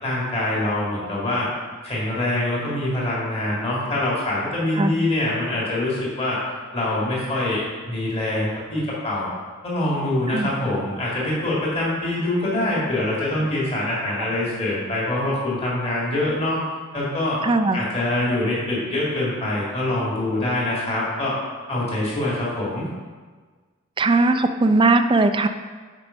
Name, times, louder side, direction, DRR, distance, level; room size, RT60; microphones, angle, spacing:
voice 1, 0.0-1.5 1.8-6.4 6.7-9.3 9.6-16.6 16.9-17.4 17.7-21.4 21.7-22.9, left 1 dB, 30° left, -6 dB, 2.0 m, -24 dB
voice 2, 17.4-17.8 24.0-25.5, right 3 dB, 25° right, 8 dB, 0.4 m, -18 dB
8.8 x 4.6 x 5.1 m, 1.5 s
head